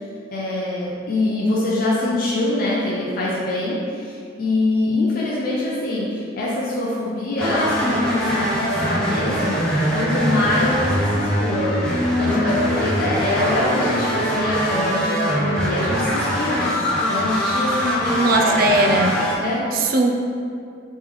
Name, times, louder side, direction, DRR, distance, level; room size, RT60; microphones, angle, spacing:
voice 1, 0.3-9.5 9.9-16.7 17.1-18.6 18.8-18.9 19.4-19.6, left 2 dB, 50° left, -6 dB, 0.5 m, -24 dB
sound 1, 7.4-19.4, equal, 5° left, 0.6 m, -22 dB
voice 2, 18.1-19.1 19.7-20.1, right 2 dB, 50° right, 2 dB, 0.4 m, -18 dB
3.2 x 3.2 x 3.5 m, 2.3 s
head